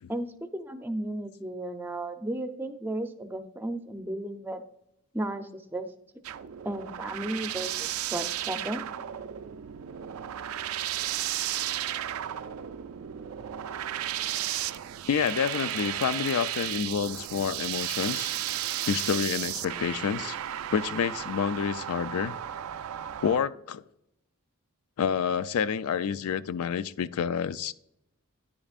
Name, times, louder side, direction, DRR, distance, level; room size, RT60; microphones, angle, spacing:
voice 1, 0.1-4.6 5.1-5.9 6.6-8.9, right 1 dB, 10° right, 7 dB, 0.5 m, -34 dB
sound 1, 6.2-23.4, right 12 dB, 75° right, 0.4 m, -34 dB
voice 2, 15.1-18.3 18.9-20.4 20.7-22.4 23.2-23.8 25.0-27.7, left 7 dB, 75° left, 16 dB, 0.4 m, -28 dB
10.0 x 8.6 x 2.4 m, 0.81 s
head